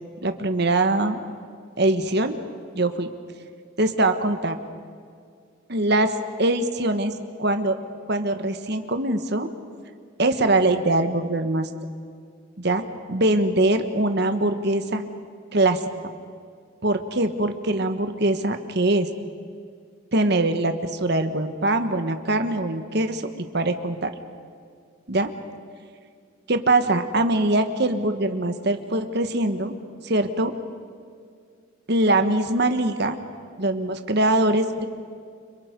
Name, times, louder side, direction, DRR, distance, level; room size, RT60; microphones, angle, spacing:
voice 1, 0.2-1.2 1.8-2.4 2.7-3.1 3.8-4.6 5.7-7.1 7.4-7.8 8.1-9.5 10.2-11.7 12.6-12.8 13.1-15.0 15.5-15.8 16.8-19.1 20.1-24.1 25.1-25.3 26.5-29.7 30.0-30.5 31.9-33.2 33.6-34.9, right 2 dB, 55° right, 7 dB, 1.4 m, -22 dB
29.5 x 25.5 x 5.3 m, 2.2 s
head